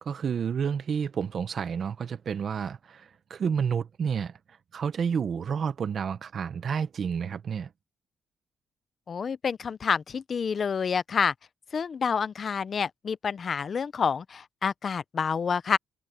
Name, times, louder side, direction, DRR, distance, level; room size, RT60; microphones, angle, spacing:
voice 1, 0.0-4.4 4.7-7.7, right 7 dB, 40° right, 0.7 m, -30 dB
voice 2, 9.1-11.3 11.7-15.8, left 6 dB, 35° left, 0.4 m, -28 dB
cardioid pair, 165°, 0 cm